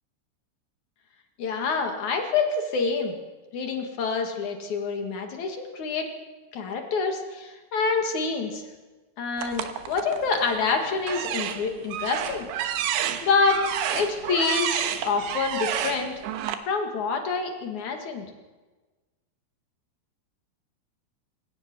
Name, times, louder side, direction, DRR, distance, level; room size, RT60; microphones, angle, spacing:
voice 1, 1.4-3.2 3.5-6.1 6.5-8.6 9.2-12.5 13.2-16.1 16.6-18.2, left 4 dB, 50° left, 4 dB, 2.4 m, -27 dB
sound 1, 9.4-10.5 11.0-16.5, right 10 dB, 75° right, 3.1 m, -30 dB
27.0 x 17.0 x 6.1 m, 1.3 s
omnidirectional pair, 5.9 m